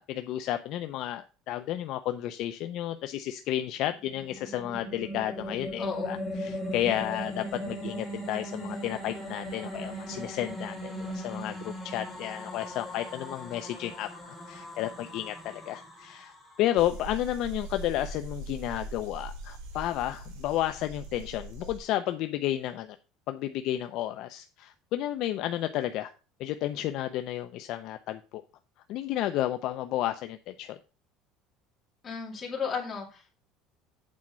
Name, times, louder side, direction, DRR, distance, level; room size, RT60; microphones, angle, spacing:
voice 1, 0.0-14.1 14.5-23.0 23.3-26.1 26.4-28.4 28.9-30.8, left 13 dB, 50° left, 8 dB, 0.5 m, -32 dB
sound 1, 3.8-17.2, equal, 5° right, 2.7 m, -39 dB
voice 2, 5.8-6.2 32.0-33.2, left 6 dB, 20° left, -1 dB, 2.7 m, -34 dB
sound 2, 16.8-21.8, right 2 dB, 85° right, 2.8 m, -41 dB
8.4 x 4.3 x 6.1 m, 0.34 s
cardioid pair, 170°, 0 cm